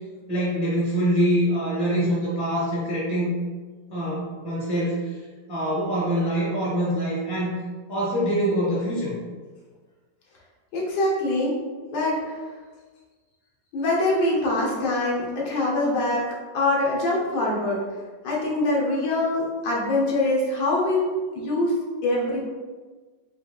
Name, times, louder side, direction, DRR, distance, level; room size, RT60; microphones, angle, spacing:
voice 1, 0.3-3.3 3.9-5.2 5.5-7.6 7.9-9.2, equal, 15° left, -7 dB, 1.1 m, -24 dB
voice 2, 10.7-11.6 11.9-12.4 13.7-17.8 18.2-21.0 21.3-21.7 22.0-22.4, left 2 dB, 80° left, -3 dB, 1.5 m, -24 dB
4.5 x 3.5 x 2.3 m, 1.4 s
omnidirectional pair, 1.9 m